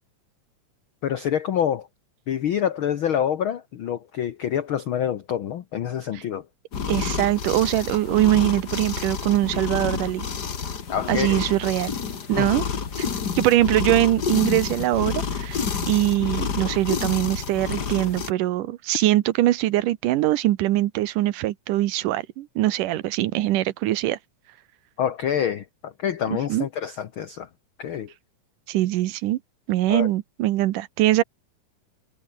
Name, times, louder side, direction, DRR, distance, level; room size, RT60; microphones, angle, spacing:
voice 1, 1.0-1.9 2.3-6.5 10.9-11.4 12.4-12.5 25.0-27.5 27.8-28.1 29.9-30.1, left 9 dB, 80° left, 1.1 m, -26 dB
sound 1, 6.7-18.3, left 6 dB, 35° left, 1.9 m, -29 dB
voice 2, 6.9-10.3 11.1-11.9 12.3-12.6 13.0-13.1 13.4-24.2 26.5-26.7 28.7-29.4 29.7-31.2, right 15 dB, 80° right, 2.5 m, -22 dB
omnidirectional pair, 3.8 m